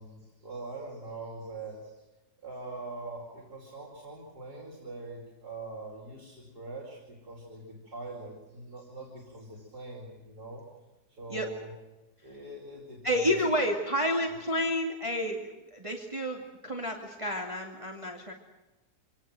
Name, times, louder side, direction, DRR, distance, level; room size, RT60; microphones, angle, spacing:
voice 1, 0.0-2.0 2.4-10.6 11.2-11.7 12.2-13.3, right 2 dB, 90° right, -2 dB, 5.5 m, -43 dB
voice 2, 13.0-18.3, equal, 20° right, 1 dB, 2.6 m, -30 dB
26.5 x 19.0 x 7.9 m, 1.1 s
omnidirectional pair, 1.7 m